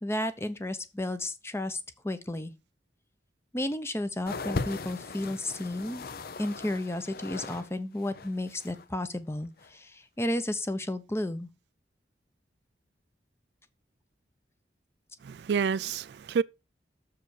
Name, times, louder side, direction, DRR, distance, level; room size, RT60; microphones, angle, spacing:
voice 1, 0.0-2.5 3.5-6.1 6.4-11.5, left 1 dB, 15° left, 0.7 m, -33 dB
sound 1, 4.3-7.7 7.9-8.8 9.6-9.7, left 3 dB, 55° left, 0.6 m, -38 dB
voice 2, 15.2-16.4, right 6 dB, 65° right, 0.3 m, -28 dB
6.9 x 4.9 x 6.4 m
head